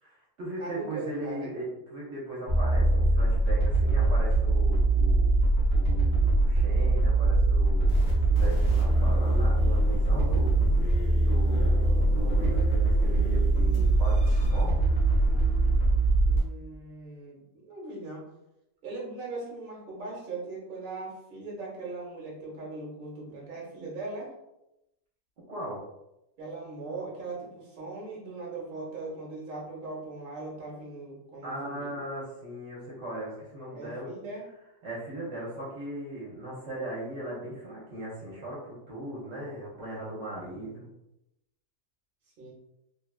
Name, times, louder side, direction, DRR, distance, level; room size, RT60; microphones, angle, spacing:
voice 1, 0.0-5.3 5.7-8.0 8.2-10.5 11.2-14.8 25.5-25.8 31.4-34.1 34.8-40.9, right 1 dB, 70° right, -6 dB, 1.0 m, -38 dB
voice 2, 0.6-1.5 16.2-18.2 18.8-24.3 26.4-32.0 33.7-34.5 40.4-40.8 42.4-42.5, right 3 dB, 50° right, -4 dB, 1.0 m, -39 dB
sound 1, 2.5-16.4, right 2 dB, 90° left, 1.2 m, -23 dB
3.0 x 2.3 x 2.3 m, 0.88 s
omnidirectional pair, 1.3 m